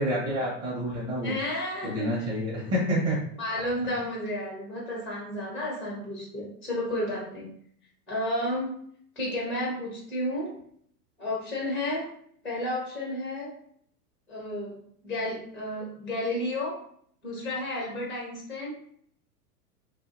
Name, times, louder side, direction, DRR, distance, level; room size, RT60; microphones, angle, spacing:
voice 1, 0.0-1.3 1.8-3.2, equal, 35° right, -4 dB, 1.0 m, -28 dB
voice 2, 1.2-2.3 3.4-7.5 8.1-8.7 9.2-10.5 11.2-12.0 12.4-13.5 14.3-14.8 15.0-16.8 17.2-18.7, left 1 dB, ahead, -3 dB, 0.4 m, -32 dB
2.6 x 2.6 x 2.6 m, 0.63 s
hypercardioid pair, 115°, 48 cm